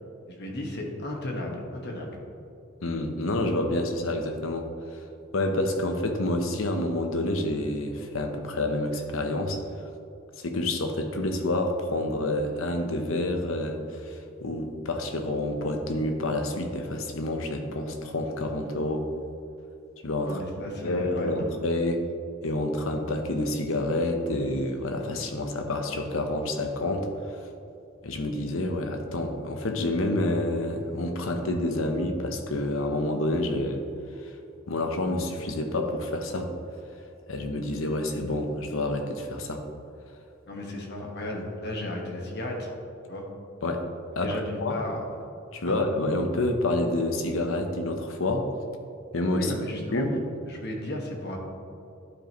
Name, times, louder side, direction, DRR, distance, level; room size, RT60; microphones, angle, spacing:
voice 1, 0.3-2.2 20.2-21.5 40.5-42.7 43.1-43.2 44.1-45.0 45.6-45.8 49.3-50.0 50.5-51.4, left 1 dB, 55° left, 0 dB, 1.4 m, -34 dB
voice 2, 2.8-4.7 5.3-9.6 10.4-19.1 20.0-22.0 22.4-27.4 28.0-33.8 34.2-34.3 34.7-36.5 37.3-39.6 43.6-43.8 44.2-44.8 45.5-48.5 49.1-49.5 49.9-50.1, left 1 dB, 80° left, 5 dB, 0.8 m, -28 dB
11.5 x 5.1 x 3.0 m, 2.6 s
head